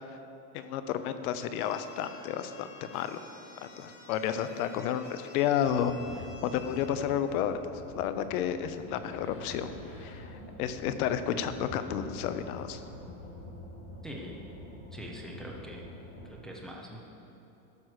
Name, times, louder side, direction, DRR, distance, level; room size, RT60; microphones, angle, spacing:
voice 1, 0.5-2.7 2.9-3.2 3.6-5.9 6.4-7.6 7.9-9.7 10.0-10.3 10.6-12.8, left 9 dB, 65° left, 11 dB, 0.8 m, -31 dB
sound 1, 1.5-6.9, left 3 dB, 50° left, 1.7 m, -51 dB
sound 2, 5.6-16.3, left 1 dB, 30° left, 1.9 m, -46 dB
voice 2, 14.0-14.5 14.9-15.9 16.2-17.0, equal, ahead, -2 dB, 0.5 m, -43 dB
12.5 x 4.7 x 6.5 m, 3.0 s
supercardioid pair, 155°, 47 cm